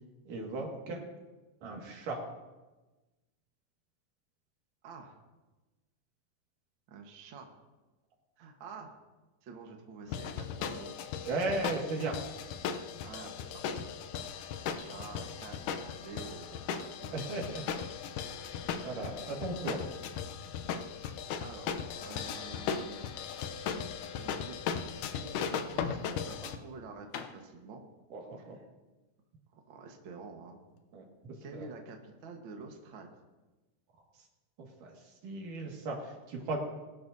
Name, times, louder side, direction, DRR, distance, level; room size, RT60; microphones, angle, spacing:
voice 1, 0.3-1.0 1.6-2.2 11.3-12.2 17.1-17.6 18.8-19.8 28.1-28.6 30.9-31.0 31.5-31.7 34.8-36.6, right 2 dB, 80° right, 0 dB, 3.6 m, -36 dB
voice 2, 4.8-5.2 6.9-7.5 8.4-9.0 9.4-10.9 13.0-13.9 14.7-17.3 21.4-23.1 23.5-23.8 24.2-24.6 24.8-27.8 28.4-28.6 29.5-30.6 31.4-33.1, right 4 dB, 50° right, 2 dB, 1.6 m, -48 dB
sound 1, 10.1-26.6, left 7 dB, 90° left, 2.3 m, -37 dB
sound 2, 27.0-30.9, left 7 dB, 75° left, 2.2 m, -51 dB
21.5 x 12.0 x 2.7 m, 1.2 s
omnidirectional pair, 3.7 m